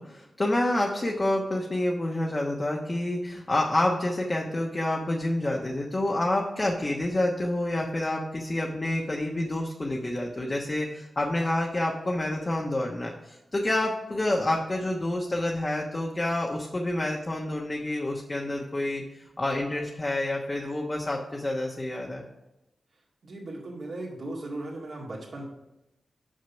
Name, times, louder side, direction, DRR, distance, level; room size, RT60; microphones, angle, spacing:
voice 1, 0.0-22.3, left 1 dB, 35° left, -1 dB, 1.1 m, -28 dB
voice 2, 23.2-25.4, right 2 dB, 65° right, -4 dB, 2.0 m, -37 dB
6.4 x 5.8 x 5.7 m, 0.94 s
cardioid pair, 70°, 0 cm